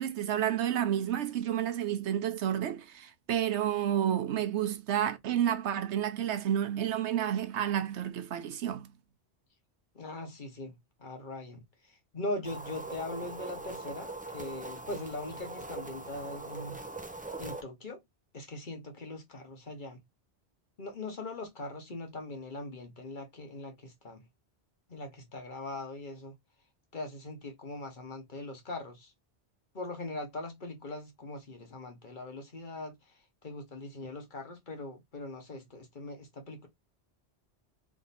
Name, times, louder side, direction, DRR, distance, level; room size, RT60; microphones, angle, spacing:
voice 1, 0.0-8.9, right 10 dB, 85° right, 1.0 m, -30 dB
voice 2, 9.9-16.8 17.4-18.0 18.3-20.0 20.8-24.3 24.9-26.3 26.9-29.1 29.7-36.7, left 2 dB, 45° left, 1.2 m, -41 dB
sound 1, 12.4-17.6, right 2 dB, 10° right, 0.5 m, -42 dB
3.5 x 2.8 x 4.1 m
omnidirectional pair, 1.1 m